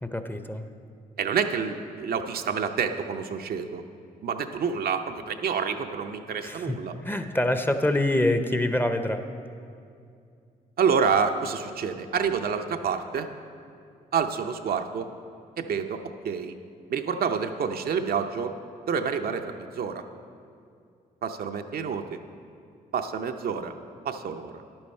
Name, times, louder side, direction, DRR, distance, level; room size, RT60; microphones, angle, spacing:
voice 1, 0.0-0.7 6.4-6.8 7.0-9.2, left 1 dB, 10° left, 8 dB, 0.7 m, -25 dB
voice 2, 1.2-3.8 4.2-6.9 10.8-13.3 14.1-15.1 15.6-16.5 16.9-18.5 18.9-20.0 21.2-22.2 22.9-23.7 24.0-24.5, right 6 dB, 60° right, 6 dB, 0.6 m, -28 dB
10.5 x 8.7 x 4.4 m, 2.4 s
supercardioid pair, 55°, 17 cm